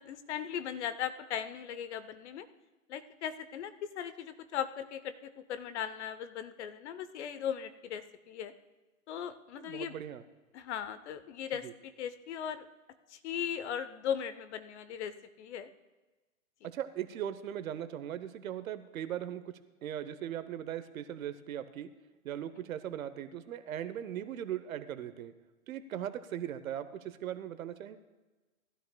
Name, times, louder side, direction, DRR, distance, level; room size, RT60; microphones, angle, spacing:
voice 1, 0.0-2.5 2.9-8.5 9.1-10.0 10.5-12.7 13.1-15.7, left 9 dB, 55° left, 13 dB, 0.8 m, -38 dB
voice 2, 9.6-10.2 11.6-11.7 16.6-19.5 19.8-21.9 22.2-25.3 25.7-28.0, right 10 dB, 75° right, 12 dB, 0.9 m, -39 dB
16.5 x 12.5 x 2.3 m, 1.2 s
hypercardioid pair, 130°, 42 cm